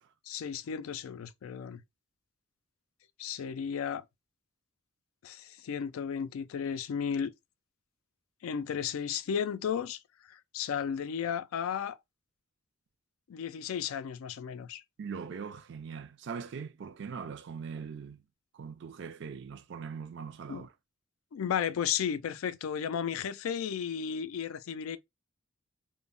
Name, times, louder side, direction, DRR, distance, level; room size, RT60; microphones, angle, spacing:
voice 1, 0.3-1.8 3.2-4.1 5.2-7.3 8.4-10.0 10.3-12.0 13.3-14.8 20.5-20.7 21.3-25.0, left 7 dB, 85° left, 0.3 m, -34 dB
voice 2, 15.0-18.2 18.5-20.7, right 6 dB, 55° right, 0.4 m, -41 dB
2.1 x 2.0 x 3.6 m
head